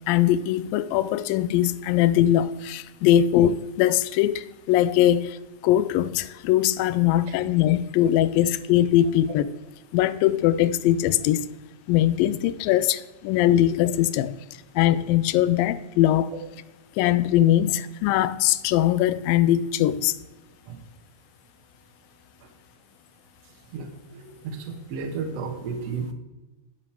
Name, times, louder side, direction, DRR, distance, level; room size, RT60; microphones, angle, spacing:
voice 1, 0.1-5.4 5.6-9.5 9.9-11.5 11.9-14.4 14.8-16.3 17.0-20.2, left 12 dB, 90° left, 16 dB, 2.3 m, -21 dB
voice 2, 23.7-26.1, right 5 dB, 60° right, 3 dB, 2.1 m, -33 dB
10.5 x 7.6 x 4.5 m, 1.1 s
omnidirectional pair, 3.9 m